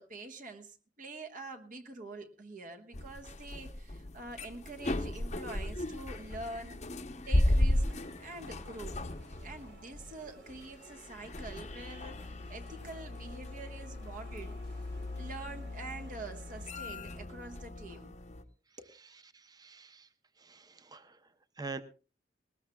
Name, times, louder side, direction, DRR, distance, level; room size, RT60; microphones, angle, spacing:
voice 1, 0.0-6.8 7.3-9.0 9.4-14.6 15.2-18.2 18.8-19.0, right 2 dB, 50° right, 6 dB, 1.3 m, -46 dB
sound 1, 2.9-18.4, left 1 dB, 40° left, 0.8 m, -36 dB
sound 2, 7.5-16.7, right 2 dB, 80° right, 3.6 m, -59 dB
voice 2, 18.7-20.1 20.4-21.8, right 4 dB, 20° right, 11 dB, 0.7 m, -47 dB
19.5 x 19.5 x 2.3 m, 0.34 s
head